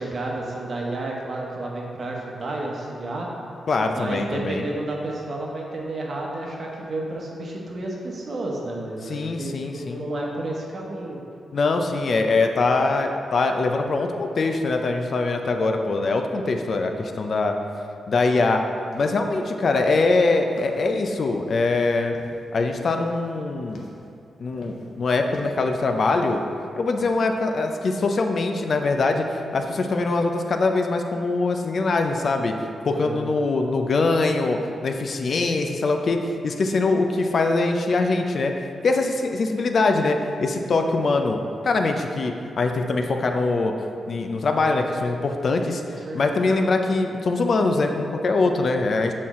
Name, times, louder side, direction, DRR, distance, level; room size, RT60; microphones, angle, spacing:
voice 1, 0.0-3.3 3.9-11.2 32.9-33.3 45.9-46.4, right 2 dB, 50° right, -2 dB, 1.0 m, -31 dB
voice 2, 3.7-4.6 9.0-10.1 11.5-17.5 18.1-18.6 18.9-22.1 22.5-23.8 24.4-26.4 26.8-32.5 32.9-36.2 36.4-38.5 38.8-41.4 41.6-43.7 44.1-45.8 46.1-49.1, left 3 dB, 50° left, 4 dB, 0.5 m, -23 dB
sound 1, 18.3-18.5 18.8-19.4 19.8-20.2 20.6-21.7 22.1-22.5 23.0-23.3 23.6-24.1 24.5-24.9 25.3-25.8 26.1-26.5 27.0-27.2, left 2 dB, 85° left, 0.8 m, -44 dB
7.3 x 4.3 x 3.6 m, 2.5 s
wide cardioid pair, 130°, 0 cm